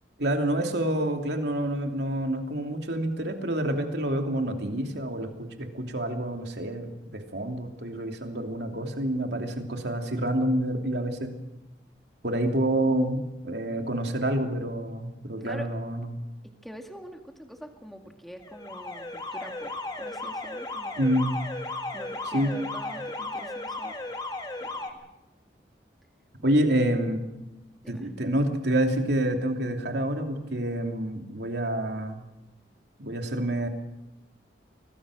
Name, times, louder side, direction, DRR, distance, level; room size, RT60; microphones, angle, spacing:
voice 1, 0.2-5.3 5.6-11.3 12.2-16.1 21.0-21.3 22.3-22.5 26.4-27.2 27.9-32.2 33.0-33.7, right 1 dB, 70° right, 3 dB, 2.9 m, -27 dB
voice 2, 15.4-15.7 16.4-21.2 21.9-24.0 24.6-25.1 26.4-26.6 27.8-28.1, equal, ahead, 4 dB, 2.0 m, -45 dB
Alarm, 18.4-24.9, left 2 dB, 20° left, 1.7 m, -35 dB
25.0 x 19.0 x 6.4 m, 0.98 s
head